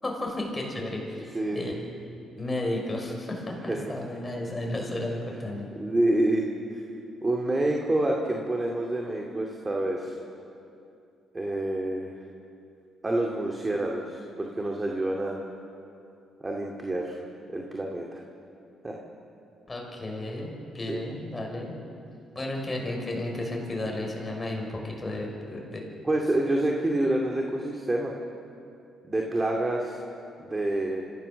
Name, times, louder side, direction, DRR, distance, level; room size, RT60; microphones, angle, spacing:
voice 1, 0.0-1.8 2.4-5.7 19.7-21.7 22.3-25.8, left 1 dB, 20° left, 0 dB, 6.0 m, -33 dB
voice 2, 1.3-1.7 3.6-3.9 5.7-6.4 6.7-6.8 7.2-10.2 11.3-12.2 13.0-15.4 16.4-17.2 17.5-18.2 18.8-19.0 20.9-21.0 26.0-28.1 29.0-30.0 30.4-31.0, right 1 dB, 20° right, 0 dB, 2.4 m, -27 dB
27.5 x 16.0 x 7.0 m, 2.6 s
cardioid pair, 90°, 0 cm